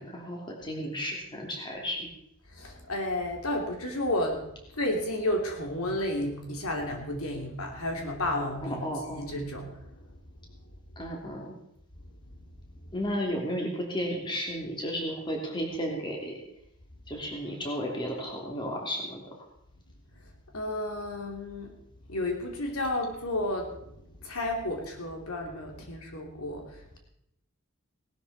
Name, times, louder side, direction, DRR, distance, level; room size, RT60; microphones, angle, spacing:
voice 1, 0.0-2.1 8.8-9.2 11.0-11.5 12.9-16.3 17.1-19.2, equal, 20° left, 0 dB, 2.7 m, -33 dB
voice 2, 2.5-10.2 12.8-12.9 20.2-27.0, left 1 dB, 80° left, 2 dB, 2.8 m, -32 dB
18.0 x 12.5 x 4.2 m, 0.78 s
head